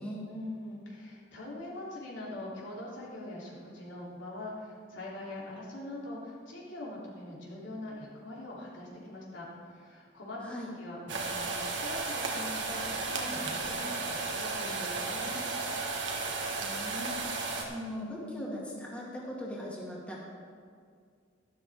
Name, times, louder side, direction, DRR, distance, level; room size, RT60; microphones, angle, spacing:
voice 1, 0.3-10.4 10.8-15.4, left 1 dB, 80° left, -5 dB, 3.2 m, -42 dB
voice 2, 10.4-10.7 16.4-20.2, left 1 dB, 5° left, -5 dB, 2.1 m, -40 dB
sound 1, 11.1-17.6, right 3 dB, 70° right, 1.5 m, -34 dB
12.5 x 12.5 x 3.6 m, 2.2 s
head